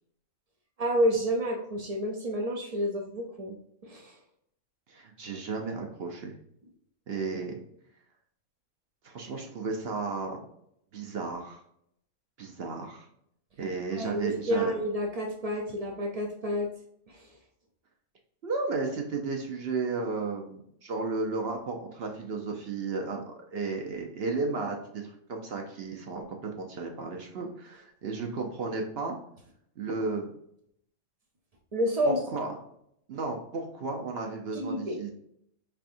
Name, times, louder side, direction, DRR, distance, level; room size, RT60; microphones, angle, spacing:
voice 1, 0.8-3.5 3.8-4.2 13.9-16.7 17.1-17.3 31.7-32.2 34.5-35.0, equal, 80° right, 2 dB, 0.3 m, -29 dB
voice 2, 4.9-6.3 7.1-7.6 9.0-10.4 10.9-11.6 12.4-13.1 13.6-14.7 18.4-29.2 29.8-30.3 32.1-32.5 33.1-35.1, right 4 dB, 55° right, 2 dB, 0.7 m, -33 dB
4.7 x 3.4 x 2.5 m, 0.73 s
omnidirectional pair, 1.4 m